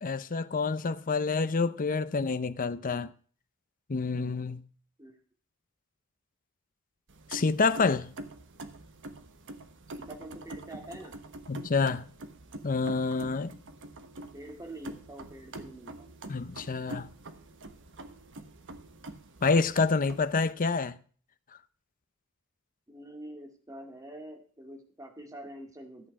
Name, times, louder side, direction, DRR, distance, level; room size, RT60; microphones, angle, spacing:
voice 1, 0.0-3.1 3.9-4.6 7.3-8.1 11.5-12.0 12.6-13.5 16.3-17.1 19.4-21.0, left 4 dB, 40° left, 0.6 m, -28 dB
sound 1, 7.1-20.5, right 2 dB, 60° right, 1.2 m, -46 dB
voice 2, 10.0-11.2 14.3-16.1 22.9-26.1, right 1 dB, 15° right, 2.2 m, -45 dB
14.0 x 8.5 x 4.7 m
head